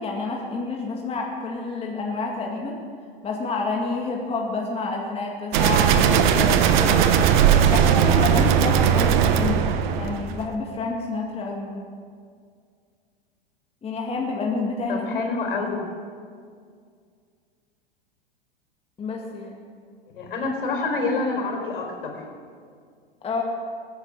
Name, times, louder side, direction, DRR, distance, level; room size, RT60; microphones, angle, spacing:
voice 1, 0.0-2.8 3.2-7.1 7.7-11.8 13.8-15.3 15.6-15.7 19.0-19.6 23.2-23.4, left 3 dB, 20° left, -1 dB, 2.0 m, -29 dB
sound 1, 5.5-10.4, right 8 dB, 55° right, 1.2 m, -18 dB
voice 2, 14.9-15.8 20.1-22.2, left 3 dB, 65° left, 2 dB, 4.5 m, -27 dB
20.5 x 10.0 x 6.6 m, 2.1 s
figure-of-eight pair, 90°, 29 cm